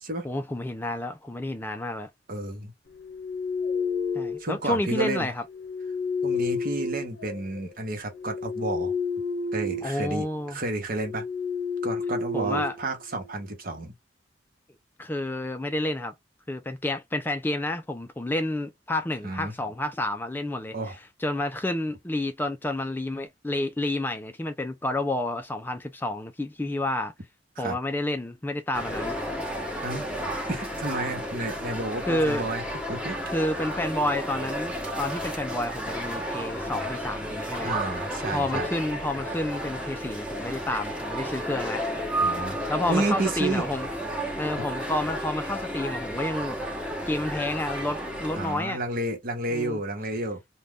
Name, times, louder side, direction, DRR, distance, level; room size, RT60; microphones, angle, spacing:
voice 1, 0.2-2.1 4.1-5.4 9.8-10.6 12.3-12.7 15.0-16.1 16.5-21.0 21.2-27.1 27.6-29.1 32.1-32.5 33.3-37.7 38.3-41.8 42.7-43.9 44.4-46.6 47.1-48.8 49.5-49.8, left 1 dB, 10° left, 0.3 m, -30 dB
voice 2, 2.3-2.7 4.4-5.3 6.2-8.9 9.5-11.2 11.8-13.9 19.2-19.5 20.7-21.0 27.6-27.8 29.8-30.1 30.5-32.6 32.9-33.2 37.6-38.7 42.2-43.7 44.6-44.7 48.3-50.4, right 2 dB, 55° right, 1.0 m, -31 dB
sound 1, 3.1-4.6 5.6-7.7 8.1-10.0 10.3-10.5 11.0-13.4, left 4 dB, 85° left, 0.7 m, -30 dB
Ambience Food Court A, 28.7-48.7, equal, 5° right, 0.9 m, -32 dB
2.5 x 2.2 x 3.3 m
head